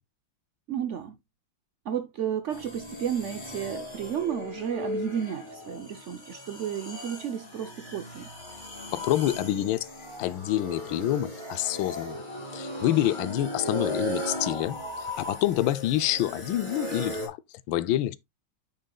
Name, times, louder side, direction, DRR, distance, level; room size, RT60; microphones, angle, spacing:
voice 1, 0.7-1.1 1.8-8.3, right 8 dB, 75° right, 0.6 m, -32 dB
sound 1, 2.5-17.3, equal, 25° left, 2.5 m, -37 dB
voice 2, 8.9-9.9 10.2-12.2 12.5-17.4 17.7-18.2, left 13 dB, 75° left, 1.3 m, -27 dB
8.8 x 6.5 x 2.3 m
omnidirectional pair, 2.2 m